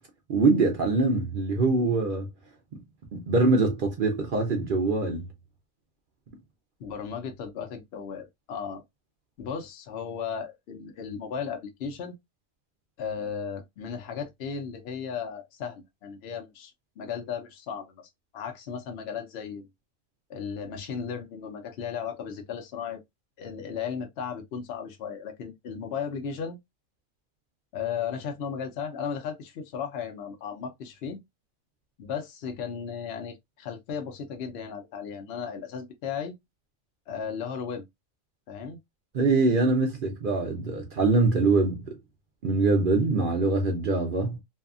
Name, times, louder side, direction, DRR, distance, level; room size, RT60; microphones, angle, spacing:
voice 1, 0.3-2.3 2.7-2.8 3.1-5.3 39.1-42.0 42.4-44.4, right 3 dB, 55° right, 0.6 m, -24 dB
voice 2, 6.8-8.8 9.4-12.2 13.0-19.7 20.3-23.0 23.4-26.6 27.7-31.2 32.0-36.3 37.1-37.8 38.5-38.8, left 7 dB, 60° left, 0.7 m, -35 dB
2.7 x 2.4 x 2.3 m
omnidirectional pair, 1.4 m